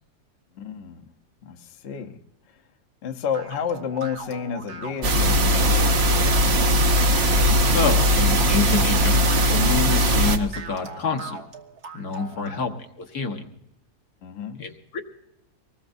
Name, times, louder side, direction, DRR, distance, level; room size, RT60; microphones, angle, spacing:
voice 1, 0.6-1.1 1.4-2.2 3.0-6.0 12.4-12.6 14.2-14.7, left 7 dB, 50° left, 1.1 m, -31 dB
sound 1, 3.3-12.6, right 3 dB, 70° right, 1.8 m, -39 dB
sound 2, 5.0-10.4, equal, 45° right, 1.2 m, -19 dB
voice 2, 7.6-9.1 9.5-11.4 11.9-12.7 13.0-13.5 14.6-15.0, left 4 dB, 75° left, 1.8 m, -27 dB
24.5 x 20.0 x 2.6 m
omnidirectional pair, 1.7 m